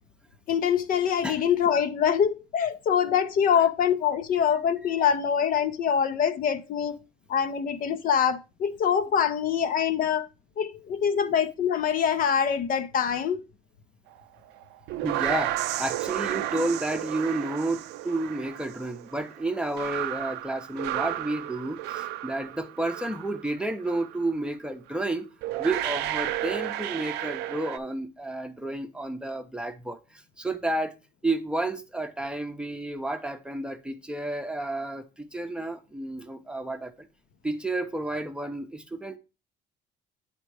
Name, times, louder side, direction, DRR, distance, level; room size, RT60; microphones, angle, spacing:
voice 1, 0.5-7.0 7.3-10.3 10.6-13.4, left 8 dB, 55° left, 0.7 m, -24 dB
sound 1, 14.6-23.5 23.8-24.2 25.0-25.1 25.4-27.8, right 13 dB, 85° right, 0.4 m, -32 dB
voice 2, 15.0-25.3 25.6-30.9 31.2-37.1 37.4-39.2, right 2 dB, 5° right, 0.7 m, -31 dB
8.0 x 3.7 x 4.6 m
cardioid pair, 110°, 17 cm